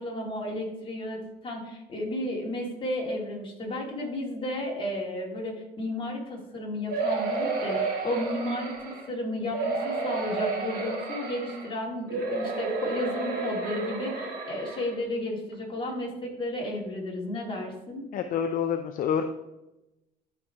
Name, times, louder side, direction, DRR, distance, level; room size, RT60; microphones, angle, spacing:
voice 1, 0.0-18.0, left 1 dB, 30° left, -2 dB, 2.6 m, -33 dB
sound 1, 6.9-9.1 9.5-11.7 12.1-14.9 15.5-15.6 15.9-16.0, right 3 dB, 70° right, 2.5 m, -31 dB
voice 2, 18.1-19.2, left 8 dB, 55° left, 7 dB, 0.6 m, -27 dB
12.0 x 4.7 x 3.6 m, 0.94 s
cardioid pair, 110°, 17 cm